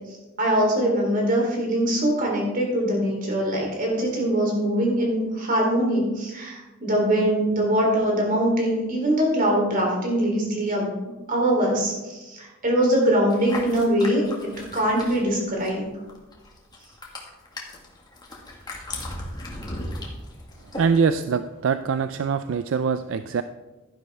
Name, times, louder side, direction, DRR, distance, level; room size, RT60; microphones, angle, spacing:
voice 1, 0.1-10.9 11.3-15.9, right 1 dB, 45° right, -1 dB, 3.4 m, -23 dB
sound 1, 13.3-21.0, left 1 dB, 20° left, 1.9 m, -37 dB
voice 2, 20.7-23.4, right 5 dB, 70° right, 11 dB, 0.4 m, -23 dB
12.0 x 10.5 x 3.5 m, 1.1 s
head